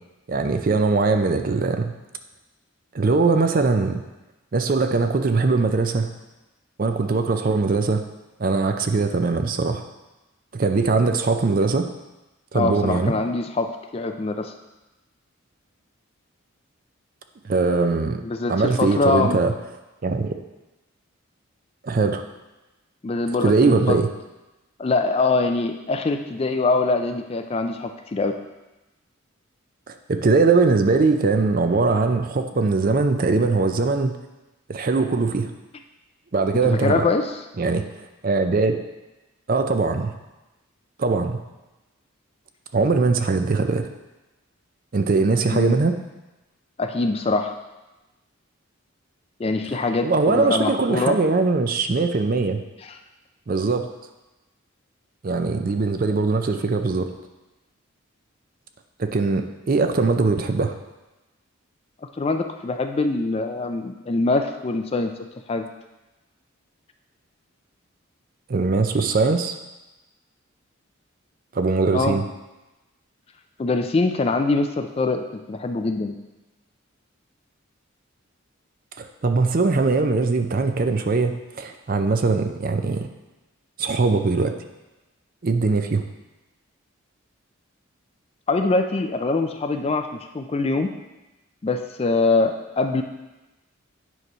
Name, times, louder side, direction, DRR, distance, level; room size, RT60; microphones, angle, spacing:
voice 1, 0.3-1.9 2.9-4.0 4.5-6.1 6.8-8.0 8.4-9.8 10.5-11.9 12.5-13.2 17.4-18.2 18.5-19.5 20.0-20.3 21.8-22.2 23.3-24.1 29.9-34.2 34.7-35.5 36.3-37.1 37.6-37.8 38.2-38.8 39.5-40.1 41.0-41.4 42.7-43.9 44.9-46.0 50.0-52.6 53.5-53.9 55.2-57.1 59.0-60.7 68.5-69.6 71.5-72.2 79.0-83.1 83.8-84.5 85.4-86.0, right 3 dB, 40° right, 7 dB, 0.4 m, -21 dB
voice 2, 12.5-14.5 18.2-19.4 23.0-24.0 24.8-28.4 36.6-37.3 45.5-45.8 46.8-47.5 49.4-51.2 52.8-53.0 62.2-65.1 65.5-65.7 71.9-72.2 73.6-76.1 88.5-90.9 91.6-93.0, left 3 dB, 25° left, 6 dB, 0.3 m, -23 dB
9.1 x 3.2 x 5.4 m, 1.0 s
head